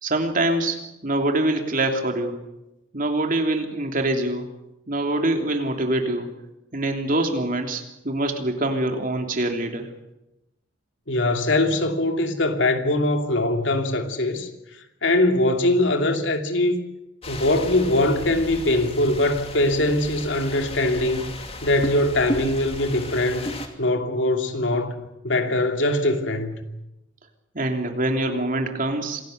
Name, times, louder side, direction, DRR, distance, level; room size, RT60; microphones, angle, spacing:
voice 1, 0.0-2.4 2.9-4.5 4.9-6.3 6.7-9.9 27.5-29.2, right 1 dB, 45° right, 3.2 m, -24 dB
voice 2, 11.1-14.5 15.0-16.8 17.3-21.3 21.6-23.5 23.8-25.0 25.2-26.6, left 1 dB, 65° left, 2.7 m, -22 dB
sound 1, 17.2-23.7, left 1 dB, 30° left, 2.8 m, -34 dB
26.5 x 17.5 x 8.1 m
head